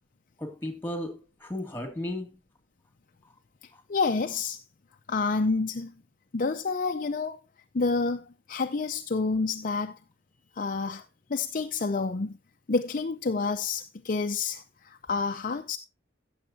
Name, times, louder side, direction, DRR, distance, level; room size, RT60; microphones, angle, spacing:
voice 1, 0.4-2.4 3.7-3.8, left 1 dB, 10° left, 2.3 m, -35 dB
voice 2, 3.9-4.6 5.1-5.9 6.3-7.4 7.7-10.0 10.6-11.0 11.3-12.4 12.7-15.8, left 4 dB, 45° left, 0.6 m, -28 dB
15.5 x 7.2 x 2.7 m
head